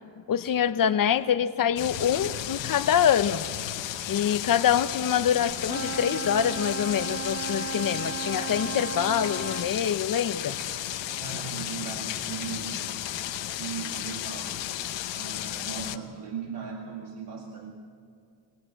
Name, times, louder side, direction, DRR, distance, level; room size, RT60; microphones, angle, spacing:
voice 1, 0.3-3.4 4.1-10.6, left 9 dB, 50° left, 12 dB, 0.8 m, -25 dB
sound 1, 1.8-16.0, left 12 dB, 80° left, 1.0 m, -34 dB
sound 2, 5.6-9.7, right 4 dB, 35° right, 0.8 m, -35 dB
voice 2, 11.2-12.9 13.5-14.6 15.1-17.7, right 6 dB, 65° right, 1 dB, 2.0 m, -38 dB
21.5 x 18.5 x 7.8 m, 2.3 s
cardioid pair, 115°, 44 cm